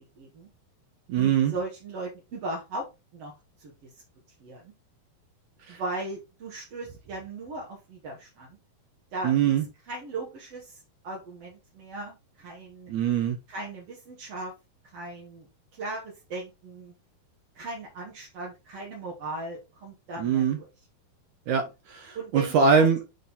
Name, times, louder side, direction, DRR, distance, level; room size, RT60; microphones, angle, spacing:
voice 1, 0.2-0.5 1.2-2.9 3.1-3.3 3.6-3.9 4.4-4.7 5.7-8.6 9.1-9.6 9.8-12.9 13.5-14.5 14.8-15.5 15.7-16.9 17.5-20.7 22.1-23.0, right 2 dB, 50° right, -2 dB, 2.1 m, -37 dB
voice 2, 1.1-1.5 5.7-5.8 9.2-9.6 12.9-13.4 20.2-20.6 21.5-23.0, right 6 dB, 70° right, 6 dB, 1.9 m, -23 dB
8.3 x 4.0 x 4.1 m, 0.26 s
omnidirectional pair, 4.5 m